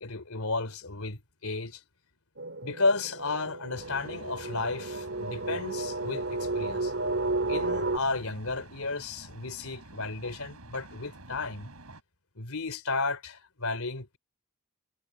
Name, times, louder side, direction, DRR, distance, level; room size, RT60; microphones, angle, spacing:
voice 1, 0.0-1.8 2.6-6.9 7.5-11.7 12.4-14.2, left 3 dB, 75° left, 3.3 m, -33 dB
sound 1, 2.4-8.0, right 2 dB, 55° right, 3.4 m, -32 dB
sound 2, 3.7-12.0, right 2 dB, 85° right, 4.9 m, -49 dB
head